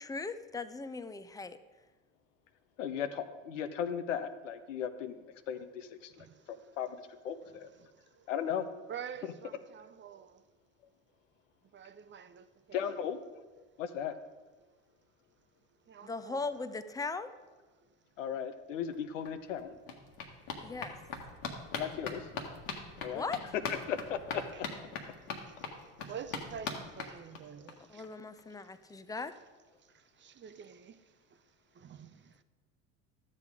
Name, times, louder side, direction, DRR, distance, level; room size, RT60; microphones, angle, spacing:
voice 1, 0.0-1.6 16.0-17.3 20.6-21.0 23.1-23.4 27.9-29.4, left 4 dB, 10° left, 0.6 m, -38 dB
voice 2, 2.8-7.7 8.3-8.7 9.2-9.3 12.7-13.4 13.8-14.1 18.2-19.7 21.8-22.3 23.0-23.2 23.5-24.7, left 8 dB, 85° left, 0.8 m, -37 dB
voice 3, 6.2-6.6 7.8-7.9 8.2-8.3 8.9-10.4 11.7-12.8 15.9-16.5 25.4-25.6 26.1-28.1 29.9-30.9 31.7-32.3, right 8 dB, 30° right, 0.6 m, -47 dB
sound 1, 18.9-19.0 19.2-27.7 28.0-28.1 28.4-28.5 28.7-28.8, left 5 dB, 65° left, 1.5 m, -42 dB
12.0 x 7.4 x 4.8 m
hypercardioid pair, 70°, 37 cm